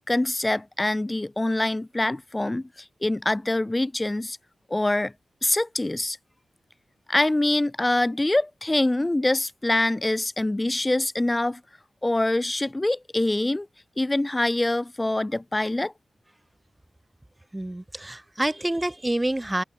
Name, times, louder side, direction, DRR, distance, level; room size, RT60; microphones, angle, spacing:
voice 1, 0.0-2.7 3.0-4.4 4.7-5.1 5.4-6.2 7.1-11.6 12.0-13.7 14.0-15.9, left 1 dB, 15° left, 3.6 m, -24 dB
voice 2, 17.5-19.6, right 1 dB, 15° right, 1.3 m, -27 dB
open air
wide cardioid pair, 105°, 0 cm